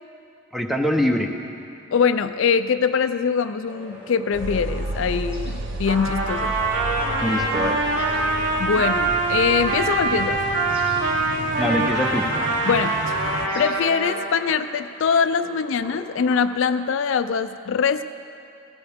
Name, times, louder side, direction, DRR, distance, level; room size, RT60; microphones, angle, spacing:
voice 1, 0.5-1.3 7.2-7.8 11.6-12.3, left 1 dB, ahead, 3 dB, 0.7 m, -23 dB
voice 2, 1.9-6.5 8.6-10.4 12.6-18.0, left 6 dB, 60° left, 11 dB, 0.3 m, -23 dB
sound 1, 3.7-16.5, equal, 25° right, 1.5 m, -42 dB
sound 2, 4.3-13.5, right 2 dB, 55° right, 0.5 m, -33 dB
Trumpet, 5.8-14.3, right 3 dB, 70° right, 2.9 m, -24 dB
16.5 x 16.5 x 3.5 m, 2.6 s
head